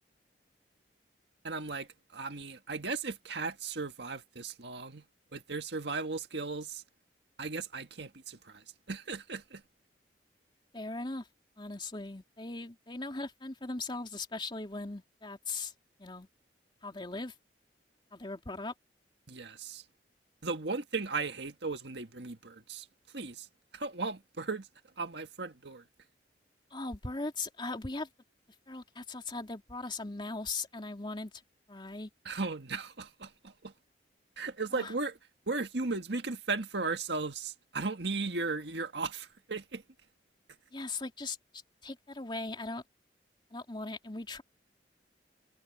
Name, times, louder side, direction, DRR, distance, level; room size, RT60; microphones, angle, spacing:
voice 1, 1.4-5.0 5.3-6.8 7.4-9.6 19.3-19.8 20.4-22.9 23.1-23.5 23.7-24.7 25.0-25.8 32.3-33.7 34.4-35.2 35.5-39.8, right 3 dB, 70° right, 1.8 m, -36 dB
voice 2, 10.7-11.3 11.6-15.7 16.0-16.3 16.8-17.3 18.1-18.7 26.7-28.1 28.7-31.3 31.7-32.1 34.7-34.9 40.7-41.4 41.8-42.8 43.5-44.4, left 3 dB, 25° left, 3.2 m, -39 dB
head